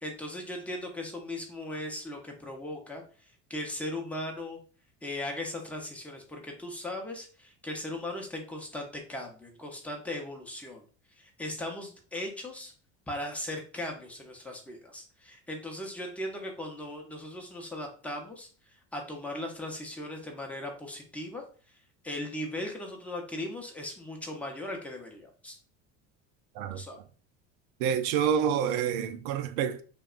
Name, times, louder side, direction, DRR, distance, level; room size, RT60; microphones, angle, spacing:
voice 1, 0.0-4.6 5.0-10.8 11.2-12.7 13.1-18.5 18.9-21.4 22.0-25.6 26.7-27.0, left 1 dB, 5° left, 0.6 m, -38 dB
voice 2, 27.8-29.8, right 8 dB, 65° right, 0.5 m, -28 dB
2.6 x 2.2 x 2.4 m
supercardioid pair, 90°, 36 cm